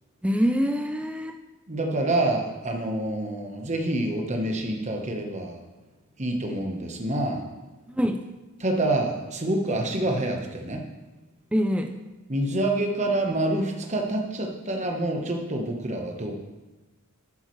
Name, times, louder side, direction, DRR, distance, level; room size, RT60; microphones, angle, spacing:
voice 1, 0.2-1.4 7.9-8.3 11.5-12.0, equal, 5° right, 6 dB, 0.4 m, -25 dB
voice 2, 1.7-5.6 6.2-7.5 8.6-10.8 12.3-16.4, right 1 dB, 30° right, 3 dB, 1.1 m, -27 dB
11.0 x 8.8 x 3.2 m, 1.2 s
head